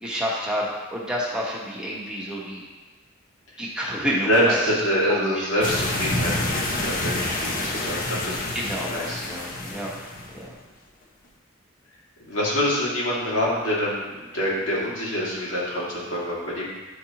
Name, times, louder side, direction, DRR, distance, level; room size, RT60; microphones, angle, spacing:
voice 1, 0.0-2.6 3.6-4.6 5.1-5.5 8.5-8.9 9.2-9.9 10.3-10.5, equal, 5° right, -5 dB, 1.1 m, -29 dB
voice 2, 4.2-8.4 8.9-9.2 12.2-16.7, equal, 80° left, -6 dB, 2.1 m, -25 dB
sound 1, 5.6-10.4, left 2 dB, 45° left, 0.8 m, -28 dB
9.5 x 4.3 x 2.9 m, 1.3 s
head